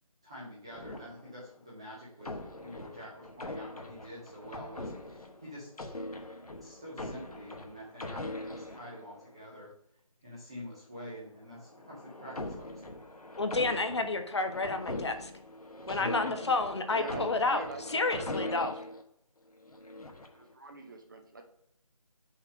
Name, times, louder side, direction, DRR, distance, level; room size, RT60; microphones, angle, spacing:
voice 1, 0.2-6.0 6.6-9.7 10.2-12.9 16.0-16.3, equal, 10° right, -8 dB, 0.5 m, -47 dB
sound 1, 0.7-1.6 2.2-9.5 11.4-19.0 19.6-20.4, left 1 dB, 85° left, 1.1 m, -42 dB
voice 2, 13.4-15.3 15.9-17.6 17.9-18.7, left 3 dB, 50° left, 7 dB, 0.7 m, -30 dB
voice 3, 16.9-18.7 20.3-21.4, right 3 dB, 35° right, 5 dB, 0.8 m, -44 dB
5.6 x 3.3 x 5.2 m, 0.69 s
figure-of-eight pair, 160°, 19 cm